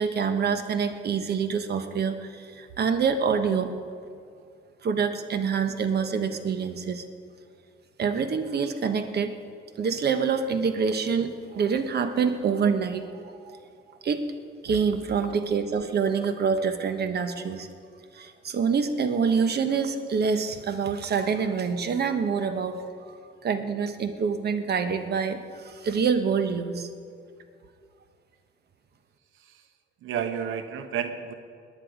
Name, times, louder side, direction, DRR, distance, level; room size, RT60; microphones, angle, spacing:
voice 1, 0.0-3.7 4.8-7.0 8.0-9.3 9.8-13.1 13.4-13.6 14.0-14.2 14.6-17.7 18.1-22.8 23.4-26.9, right 6 dB, 55° right, 9 dB, 1.1 m, -26 dB
voice 2, 30.0-31.3, right 8 dB, 85° right, 9 dB, 1.0 m, -31 dB
19.0 x 9.8 x 5.1 m, 2.3 s
cardioid pair, 90°, 20 cm